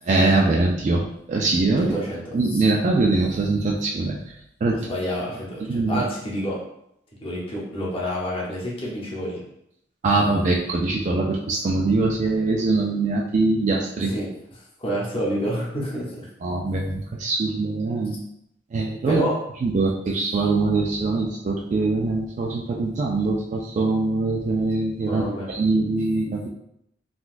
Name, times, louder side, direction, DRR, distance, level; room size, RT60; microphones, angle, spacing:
voice 1, 0.0-1.9 2.3-4.3 4.6-4.8 5.7-6.0 10.0-14.1 16.4-18.2 18.7-19.2 19.6-26.5, right 3 dB, 40° right, -1 dB, 0.3 m, -23 dB
voice 2, 1.8-2.2 4.9-6.6 7.2-9.4 14.1-14.3 14.8-16.3 19.1-19.3 25.1-25.5, equal, 30° left, -5 dB, 0.9 m, -28 dB
3.8 x 2.3 x 2.5 m, 0.76 s
head